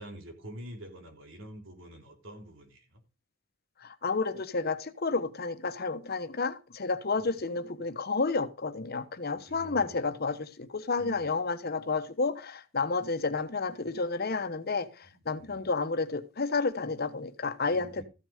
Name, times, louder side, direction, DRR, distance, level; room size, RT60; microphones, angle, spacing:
voice 1, 0.0-3.0 7.2-7.4 9.3-10.1 11.0-11.3 15.0-15.7 17.7-18.0, right 1 dB, 90° right, 3.6 m, -47 dB
voice 2, 3.8-18.0, left 4 dB, 55° left, 1.1 m, -31 dB
14.0 x 6.4 x 5.0 m
head